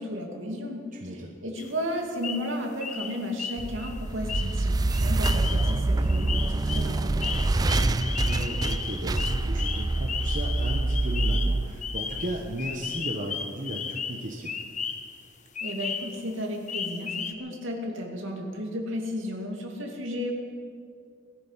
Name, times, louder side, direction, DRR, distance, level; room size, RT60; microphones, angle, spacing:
voice 1, 0.0-7.3 15.6-20.3, equal, 65° right, 1 dB, 2.6 m, -34 dB
voice 2, 0.9-1.3 7.6-14.6, right 1 dB, 40° right, 0 dB, 1.2 m, -35 dB
sound 1, 1.6-1.7 2.2-2.5 2.8-15.2 15.6-16.3 16.7-17.3, left 6 dB, 40° left, 0.9 m, -35 dB
sound 2, 3.6-12.7, right 2 dB, 20° right, 0.4 m, -26 dB
19.5 x 13.0 x 5.7 m, 2.2 s
head